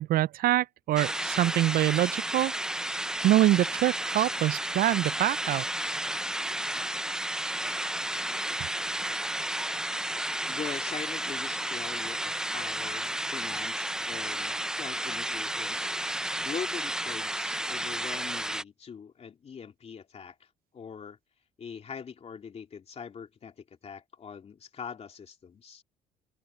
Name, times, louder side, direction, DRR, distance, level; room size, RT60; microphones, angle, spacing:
voice 1, 0.0-2.5 3.2-5.7, right 14 dB, 60° right, 0.4 m, -25 dB
sound 1, 1.0-18.6, right 1 dB, 5° right, 0.5 m, -32 dB
voice 2, 10.5-15.9 16.4-20.5 20.7-21.2 21.6-25.8, left 6 dB, 40° left, 2.8 m, -42 dB
cardioid pair, 110°, 17 cm